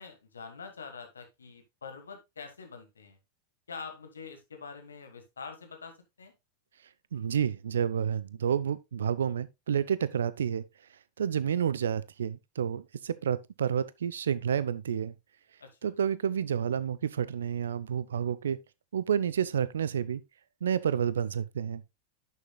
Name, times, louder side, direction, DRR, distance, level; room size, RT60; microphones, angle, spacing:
voice 1, 0.0-3.2 3.7-6.3 15.6-15.9, left 5 dB, 70° left, 1.4 m, -45 dB
voice 2, 7.1-10.6 11.2-15.1 15.8-18.6 18.9-20.2 20.6-21.8, right 8 dB, 65° right, 0.5 m, -30 dB
10.5 x 6.8 x 2.3 m
figure-of-eight pair, 90°, 0 cm